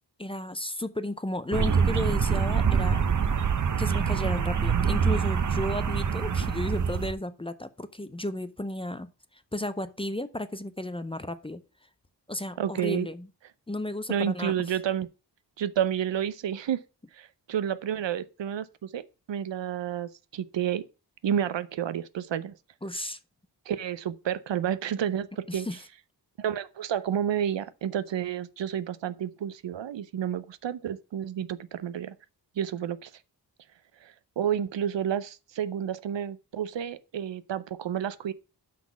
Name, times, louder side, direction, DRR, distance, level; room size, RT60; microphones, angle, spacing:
voice 1, 0.2-3.0 3.8-11.6 12.3-13.3 13.7-14.7 22.8-23.2 25.5-25.8, left 1 dB, 15° left, 0.5 m, -34 dB
sound 1, 1.5-7.1, right 6 dB, 45° right, 0.7 m, -25 dB
voice 2, 12.6-13.1 14.1-15.1 15.6-16.8 17.1-20.8 21.2-22.6 23.7-25.7 26.4-32.2 32.6-33.1 34.0-38.3, right 9 dB, 85° right, 0.7 m, -30 dB
6.1 x 5.9 x 5.9 m
wide cardioid pair, 115°, 43 cm